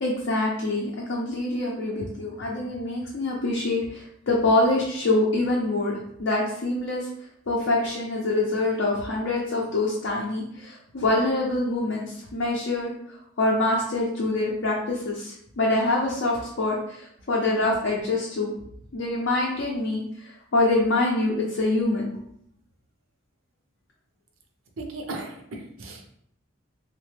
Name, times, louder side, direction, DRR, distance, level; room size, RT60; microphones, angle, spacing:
voice 1, 0.0-7.1 7.5-18.5 18.9-22.1, left 2 dB, 60° left, -4 dB, 0.5 m, -25 dB
voice 2, 24.8-26.1, right 2 dB, 75° right, 2 dB, 0.6 m, -36 dB
3.0 x 2.1 x 3.2 m, 0.71 s
head